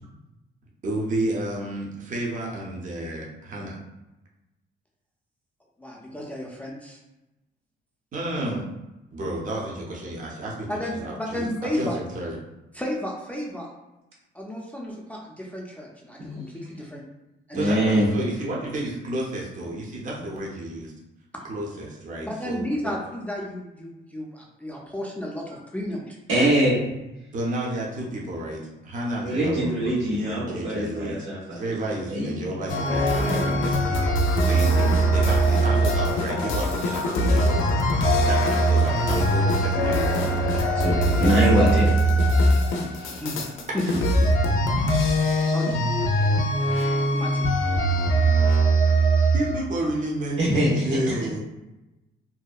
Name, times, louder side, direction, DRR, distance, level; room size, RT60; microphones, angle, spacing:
voice 1, 0.8-3.8 8.1-8.6 9.1-11.5 11.7-12.4 17.5-20.9 21.4-23.0 27.3-41.3 49.3-51.4, right 1 dB, 40° right, -2 dB, 0.6 m, -31 dB
voice 2, 5.8-7.0 10.7-12.0 12.7-13.7 14.3-17.0 17.5-17.7 22.2-26.2 34.4-34.6 42.7-43.8 44.8-45.2 45.5-45.9 47.1-47.5, left 1 dB, 5° left, -2 dB, 0.4 m, -33 dB
voice 3, 17.5-18.1 26.3-26.8 29.2-31.6 32.1-32.5 40.8-41.9 43.0-43.2 50.4-51.2, equal, 80° right, -5 dB, 1.1 m, -23 dB
sound 1, 32.7-49.6, right 1 dB, 90° left, 0.4 m, -21 dB
2.7 x 2.1 x 2.3 m, 0.98 s
cardioid pair, 90°, 20 cm